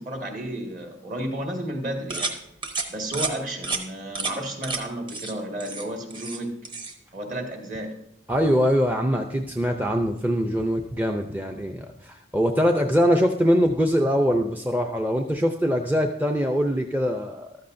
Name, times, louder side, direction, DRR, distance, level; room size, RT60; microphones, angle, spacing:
voice 1, 0.0-2.3 2.9-6.6 7.1-8.0, right 1 dB, 45° right, 2 dB, 1.9 m, -32 dB
sound 1, 2.1-2.4 2.6-2.9 3.1-3.3 3.6-3.8 4.1-4.3 4.6-4.8 5.1-5.3 5.6-6.4 6.6-6.9, right 3 dB, 25° right, 1.0 m, -30 dB
voice 2, 8.3-17.5, equal, 10° right, 4 dB, 0.5 m, -23 dB
14.0 x 12.5 x 2.6 m, 0.81 s
head